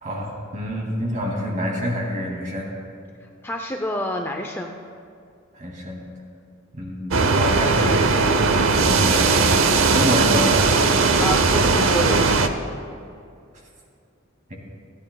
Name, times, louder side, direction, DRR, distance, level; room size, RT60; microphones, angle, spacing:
voice 1, 0.0-2.7 5.5-6.0 6.7-8.1 8.8-9.6 9.9-10.6 14.5-14.6, equal, 40° right, -1 dB, 2.4 m, -27 dB
voice 2, 3.4-4.8 11.2-12.3, left 1 dB, 10° left, 2 dB, 0.5 m, -28 dB
sound 1, 7.1-12.5, right 4 dB, 75° right, 0.7 m, -18 dB
28.5 x 9.7 x 2.3 m, 2.4 s
head